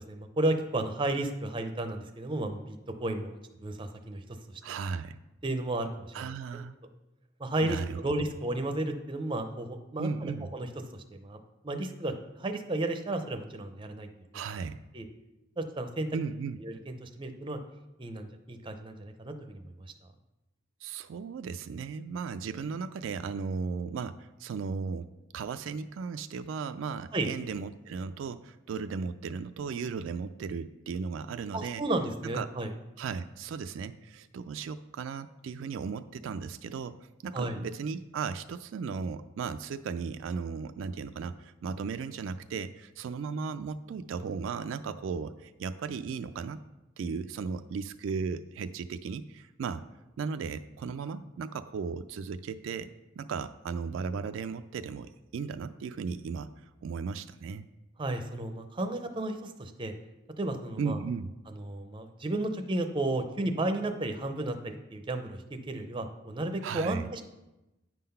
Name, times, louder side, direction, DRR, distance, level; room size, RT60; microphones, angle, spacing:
voice 1, 0.1-4.2 4.5-4.6 5.4-6.3 7.4-10.7 11.1-14.1 14.9-15.1 15.6-16.1 16.6-17.6 18.0-19.9 27.1-27.3 31.5-32.7 37.3-37.6 58.0-59.9 60.4-61.0 61.5-67.3, right 2 dB, 25° right, 7 dB, 0.6 m, -33 dB
voice 2, 4.6-5.2 6.1-6.7 7.6-8.0 10.0-10.5 14.3-14.8 16.1-16.6 20.8-31.8 32.3-32.5 33.0-46.6 47.0-49.8 50.2-57.7 60.8-61.3 66.6-67.1, right 5 dB, 80° right, 10 dB, 0.3 m, -36 dB
9.1 x 3.8 x 5.5 m, 0.98 s
head